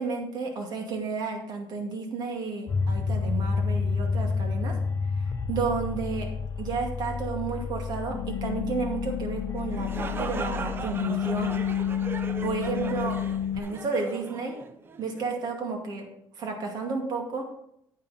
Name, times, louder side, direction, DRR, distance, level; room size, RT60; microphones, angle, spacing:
voice 1, 0.0-4.7 5.2-6.3 6.6-11.5 12.4-13.2 13.5-14.5 15.0-16.1 16.4-17.6, right 4 dB, 60° right, 3 dB, 2.2 m, -32 dB
sound 1, 2.7-13.6, left 6 dB, 40° left, 0.8 m, -29 dB
sound 2, 9.6-15.3, right 4 dB, 30° right, 0.7 m, -38 dB
9.5 x 8.9 x 4.2 m, 0.73 s
cardioid pair, 140°, 8 cm